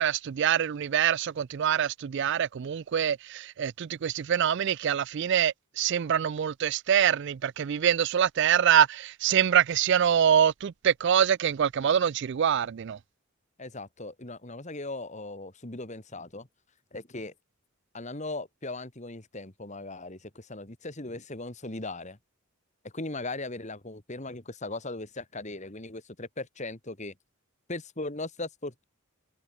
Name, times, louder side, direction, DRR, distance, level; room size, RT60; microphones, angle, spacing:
voice 1, 0.0-13.0, right 9 dB, 50° right, 0.3 m, -25 dB
voice 2, 13.6-16.5 16.9-17.3 17.9-22.2 22.9-27.1 27.7-28.8, left 2 dB, 30° left, 2.0 m, -38 dB
head